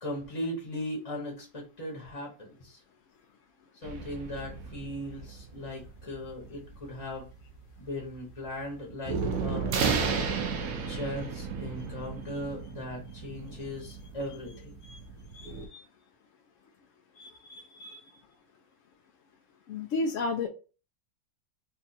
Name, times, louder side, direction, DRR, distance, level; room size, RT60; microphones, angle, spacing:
voice 1, 0.0-2.8 3.8-7.3 7.8-9.9 10.9-14.7, left 1 dB, 25° left, -2 dB, 0.8 m, -38 dB
sound 1, 3.8-15.7, right 5 dB, 65° right, 0.9 m, -34 dB
voice 2, 15.3-15.8 17.2-18.0 19.7-20.5, left 3 dB, 85° left, 3 dB, 0.6 m, -34 dB
3.5 x 2.4 x 4.0 m, 0.34 s
omnidirectional pair, 1.9 m